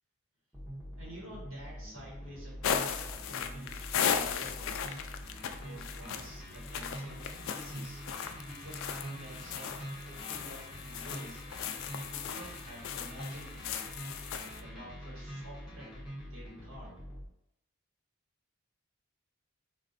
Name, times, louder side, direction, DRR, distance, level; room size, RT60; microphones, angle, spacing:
sound 1, 0.5-17.3, equal, 5° right, 0.8 m, -45 dB
voice 1, 0.9-5.1 5.4-8.0 8.4-11.4 11.9-14.0 14.6-16.9, equal, 80° right, -4 dB, 1.4 m, -50 dB
sound 2, 2.6-14.6, left 7 dB, 65° left, 0.3 m, -37 dB
4.3 x 2.4 x 2.6 m, 0.84 s
head